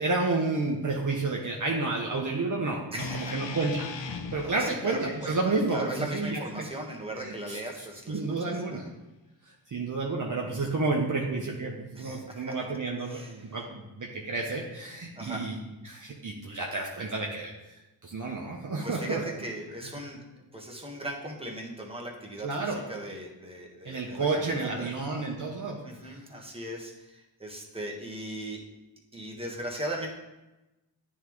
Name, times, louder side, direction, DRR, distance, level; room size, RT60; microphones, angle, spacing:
voice 1, 0.0-3.9 4.3-6.7 7.2-7.6 8.1-8.9 9.5-15.6 15.8-17.5 18.0-19.2 22.4-22.8 23.8-25.8 26.1-26.2, right 3 dB, 45° right, -1 dB, 0.9 m, -30 dB
voice 2, 2.9-3.3 4.4-8.6 11.9-12.5 13.0-13.5 15.2-15.4 18.8-20.2 20.5-24.9 25.8-28.6 29.1-30.1, right 1 dB, 15° right, -1 dB, 1.3 m, -38 dB
sound 1, 3.0-7.2, left 4 dB, 80° left, 0.7 m, -40 dB
9.6 x 3.6 x 3.1 m, 1.0 s
cardioid pair, 65°, 44 cm